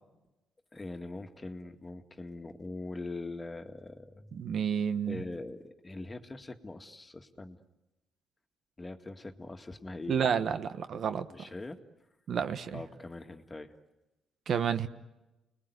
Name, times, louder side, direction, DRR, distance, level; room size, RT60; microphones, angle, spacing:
voice 1, 0.7-4.4 5.1-7.6 8.8-10.2 11.3-11.8 12.7-13.8, left 2 dB, 20° left, 7 dB, 2.0 m, -42 dB
voice 2, 4.3-5.2 10.1-11.3 12.3-12.8 14.5-14.9, right 7 dB, 60° right, 10 dB, 1.3 m, -30 dB
29.5 x 21.0 x 9.6 m, 1.0 s
cardioid pair, 90°, 0 cm